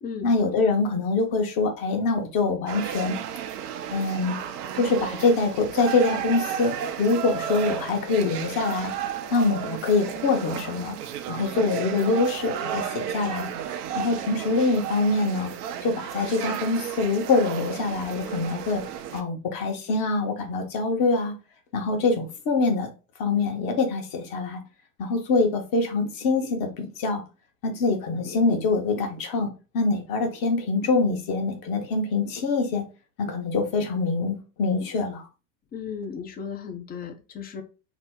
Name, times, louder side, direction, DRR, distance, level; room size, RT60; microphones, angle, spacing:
voice 1, 0.2-3.2 3.9-4.4 4.7-6.7 7.0-8.9 9.3-11.0 11.3-13.5 13.9-15.5 15.8-18.8 19.1-21.3 21.7-22.9 23.2-24.6 25.0-27.2 27.6-32.8 33.2-35.2, left 3 dB, 45° left, 1.0 m, -24 dB
sound 1, 2.7-19.2, right 9 dB, 70° right, 0.6 m, -33 dB
voice 2, 35.7-37.6, left 6 dB, 20° left, 0.4 m, -35 dB
2.9 x 2.0 x 3.5 m
hypercardioid pair, 90°, 49 cm